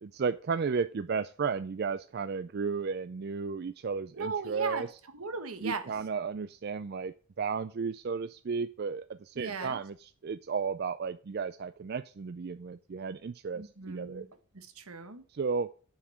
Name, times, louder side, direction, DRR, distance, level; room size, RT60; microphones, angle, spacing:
voice 1, 0.0-4.9 5.6-14.2 15.3-15.7, right 5 dB, 45° right, 13 dB, 0.4 m, -34 dB
voice 2, 4.2-4.9 5.1-5.8 9.3-9.8 13.5-14.3 14.5-15.2, right 4 dB, 75° right, 8 dB, 1.6 m, -37 dB
7.2 x 6.9 x 7.3 m, 0.40 s
head